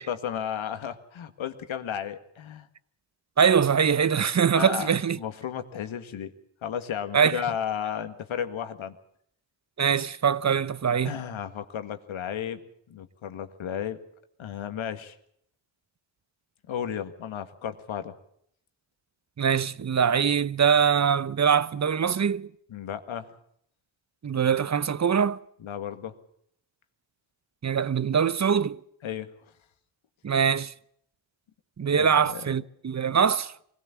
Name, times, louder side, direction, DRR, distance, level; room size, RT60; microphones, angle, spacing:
voice 1, 0.0-2.7 4.5-6.3 6.6-9.0 11.0-12.6 12.9-14.0 14.4-15.2 16.7-18.1 22.7-23.3 25.6-26.1 29.0-29.3 31.9-32.4, left 9 dB, 75° left, 1.9 m, -33 dB
voice 2, 3.4-5.2 7.1-7.4 9.8-11.1 19.4-22.5 24.2-25.4 27.6-28.8 30.2-30.7 31.8-33.5, right 7 dB, 35° right, 0.8 m, -23 dB
23.5 x 17.0 x 7.2 m
supercardioid pair, 55°, 48 cm